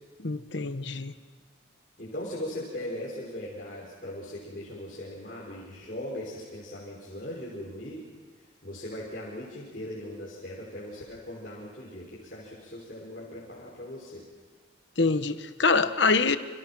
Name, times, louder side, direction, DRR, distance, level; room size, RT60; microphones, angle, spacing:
voice 1, 0.2-1.1 15.0-16.4, left 4 dB, 65° left, 10 dB, 1.2 m, -25 dB
voice 2, 2.0-8.0 8.6-14.2, left 1 dB, 45° left, -5 dB, 5.9 m, -39 dB
29.5 x 27.0 x 6.2 m, 1.4 s
head